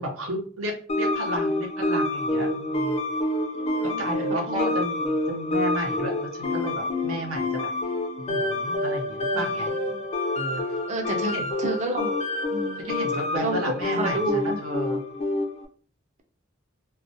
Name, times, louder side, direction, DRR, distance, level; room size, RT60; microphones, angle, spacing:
voice 1, 0.0-3.0 3.8-7.7 8.2-9.7 10.3-10.6 11.1-11.5 12.8-15.0, equal, 85° right, 2 dB, 0.7 m, -33 dB
sound 1, 0.9-15.6, left 1 dB, 30° left, 0.3 m, -27 dB
voice 2, 3.5-4.0 4.5-4.7 9.3-9.6 9.9-10.0 10.9-12.1 12.5-12.9 13.4-13.6 13.9-14.6, right 2 dB, 35° right, 4 dB, 0.4 m, -30 dB
2.3 x 2.2 x 2.6 m, 0.43 s
head